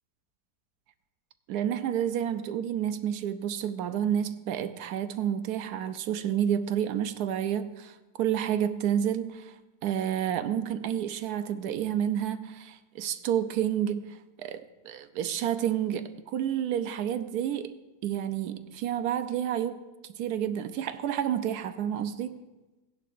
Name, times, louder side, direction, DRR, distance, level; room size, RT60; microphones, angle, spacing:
voice 1, 1.5-9.6 9.8-17.7 18.0-19.8 20.2-22.4, right 10 dB, 70° right, 1.1 m, -30 dB
17.5 x 10.5 x 2.5 m
omnidirectional pair, 1.8 m